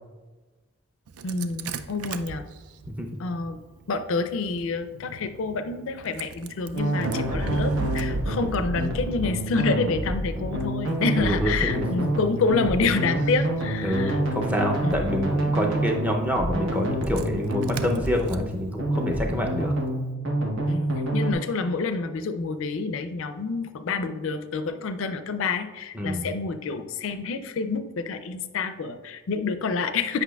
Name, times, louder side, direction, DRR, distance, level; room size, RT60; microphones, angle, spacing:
Engine starting, 1.1-20.0, right 5 dB, 90° right, 0.4 m, -39 dB
voice 1, 1.2-2.5 3.2-3.6 3.9-14.2 14.8-15.0 20.7-30.2, left 4 dB, 65° left, 9 dB, 0.4 m, -28 dB
sound 1, 6.7-21.3, right 1 dB, 60° right, 0.9 m, -28 dB
voice 2, 11.2-11.8 13.8-19.7 25.9-26.3, equal, 5° right, 1 dB, 0.5 m, -27 dB
8.2 x 5.4 x 2.3 m, 1.2 s
head